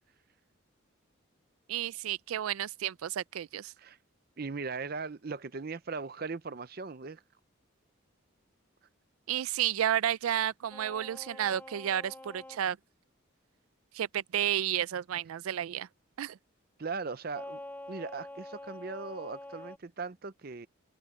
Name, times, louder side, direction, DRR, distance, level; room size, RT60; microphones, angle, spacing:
voice 1, 1.7-3.7 9.3-12.8 13.9-15.9 16.2-16.4, right 10 dB, 85° right, 0.4 m, -31 dB
voice 2, 4.4-7.2 16.8-17.6 17.9-20.7, right 4 dB, 45° right, 0.6 m, -38 dB
sound 1, 10.7-12.6 17.3-19.8, left 1 dB, 10° left, 0.8 m, -46 dB
head